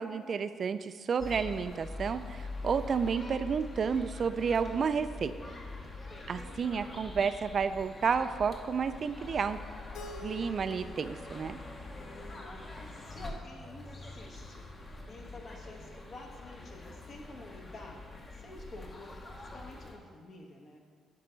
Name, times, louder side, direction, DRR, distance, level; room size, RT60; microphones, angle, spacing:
voice 1, 0.0-5.3 6.3-9.6 10.2-11.6, right 6 dB, 50° right, 11 dB, 0.3 m, -31 dB
sound 1, 1.2-20.0, left 2 dB, 35° left, 1.1 m, -44 dB
Keyboard (musical), 9.9-12.9, left 1 dB, 80° left, 0.5 m, -49 dB
voice 2, 11.9-18.0 18.3-20.8, left 2 dB, 55° left, 0 dB, 1.5 m, -50 dB
11.0 x 4.6 x 3.9 m, 2.1 s
cardioid pair, 90°, 0 cm